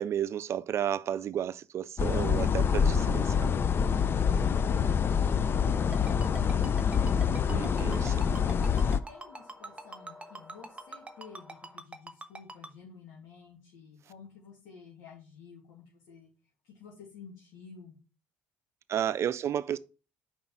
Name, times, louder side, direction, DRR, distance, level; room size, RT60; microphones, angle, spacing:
voice 1, 0.0-3.5 7.5-8.3 18.9-19.8, right 10 dB, 50° right, 0.4 m, -32 dB
sound 1, 2.0-9.0, left 6 dB, 40° left, 0.5 m, -26 dB
voice 2, 4.1-7.1 8.6-16.3 16.6-18.0, left 6 dB, 75° left, 2.4 m, -52 dB
sound 2, 5.4-11.8, equal, 5° left, 3.2 m, -49 dB
Ringtone, 5.9-12.7, right 2 dB, 20° right, 1.1 m, -42 dB
5.4 x 4.3 x 6.1 m
hypercardioid pair, 65°, 6 cm